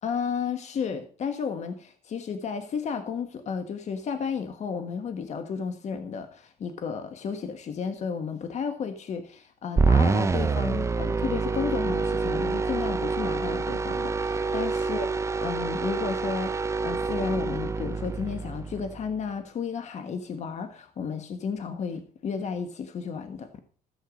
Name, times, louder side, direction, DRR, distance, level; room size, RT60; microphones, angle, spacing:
voice 1, 0.0-15.1 15.4-23.5, left 6 dB, 50° left, 1.4 m, -33 dB
sound 1, 9.8-19.1, right 4 dB, 20° right, 0.5 m, -27 dB
14.5 x 8.0 x 5.1 m
cardioid pair, 105°, 15 cm